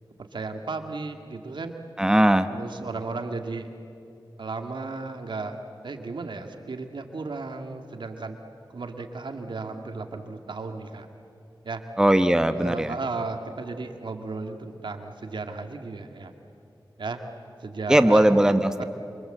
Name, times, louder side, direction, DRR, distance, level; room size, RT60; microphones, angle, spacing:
voice 1, 0.3-1.8 2.5-3.7 4.4-5.6 5.8-8.4 8.7-11.1 11.6-11.8 12.5-16.3 17.0-17.2 17.6-18.3 18.8-18.9, right 3 dB, 75° right, 5 dB, 2.0 m, -34 dB
voice 2, 2.0-2.5 12.0-12.9 17.9-18.8, right 1 dB, 10° right, 9 dB, 1.1 m, -19 dB
28.0 x 25.5 x 7.8 m, 2.7 s
cardioid pair, 50°, 8 cm